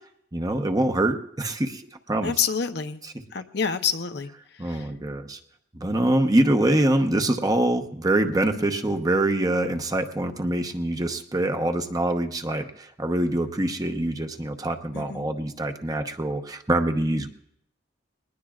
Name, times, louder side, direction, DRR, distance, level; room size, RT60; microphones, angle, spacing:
voice 1, 0.3-1.8 2.1-2.3 3.0-3.2 4.6-5.4 5.7-17.3, right 1 dB, 20° right, 6 dB, 0.9 m, -24 dB
voice 2, 2.2-3.0 3.3-4.3 4.7-4.8 14.9-15.3, left 6 dB, 65° left, 8 dB, 0.8 m, -27 dB
21.5 x 19.0 x 2.4 m, 0.73 s
head